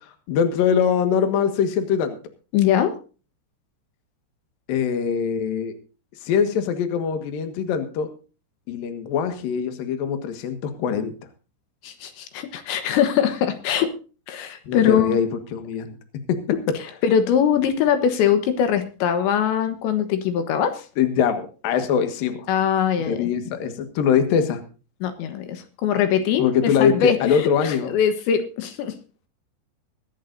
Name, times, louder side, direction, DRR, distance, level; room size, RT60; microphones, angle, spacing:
voice 1, 0.3-2.2 4.7-5.7 6.2-8.1 8.7-11.1 14.7-15.9 16.3-16.4 21.0-22.5 23.0-24.6 26.4-27.9, left 7 dB, 60° left, 7 dB, 3.0 m, -22 dB
voice 2, 2.5-2.9 11.8-13.9 14.3-15.2 17.0-20.8 22.5-23.3 25.0-28.9, left 8 dB, 80° left, 8 dB, 3.5 m, -22 dB
23.0 x 11.0 x 2.6 m, 0.36 s
omnidirectional pair, 5.2 m